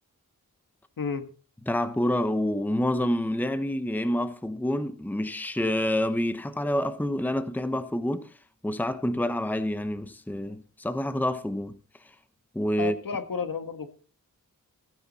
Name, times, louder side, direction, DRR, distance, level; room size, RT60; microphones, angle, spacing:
voice 1, 1.0-1.3 12.8-13.9, left 5 dB, 65° left, 1.7 m, -31 dB
voice 2, 1.7-8.3 8.6-11.7 12.5-12.9, left 1 dB, 5° left, 1.0 m, -27 dB
15.5 x 9.5 x 4.2 m
wide cardioid pair, 75°, 36 cm